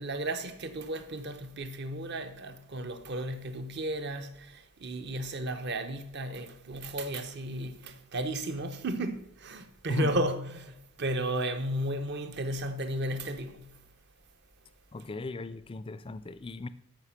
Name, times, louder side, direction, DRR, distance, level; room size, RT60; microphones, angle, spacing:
voice 1, 0.0-13.7, right 1 dB, 55° right, 0.9 m, -34 dB
voice 2, 14.9-16.7, left 2 dB, 25° left, 0.4 m, -35 dB
13.0 x 5.1 x 5.8 m
head